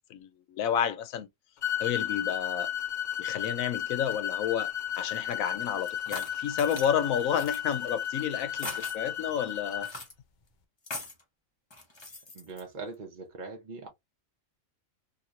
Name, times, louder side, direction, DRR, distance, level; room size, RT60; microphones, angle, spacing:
voice 1, 0.1-1.3 1.8-2.7 3.2-9.9, left 8 dB, 85° left, 1.0 m, -31 dB
sound 1, 1.6-9.9, left 10 dB, 55° left, 0.5 m, -33 dB
sound 2, 5.9-6.9 7.3-7.6 8.5-9.0 9.8-10.1 10.8-11.2 11.7-12.6, left 2 dB, 25° left, 0.7 m, -40 dB
voice 2, 12.3-13.9, right 4 dB, 40° right, 0.7 m, -41 dB
2.9 x 2.7 x 2.4 m
omnidirectional pair, 1.4 m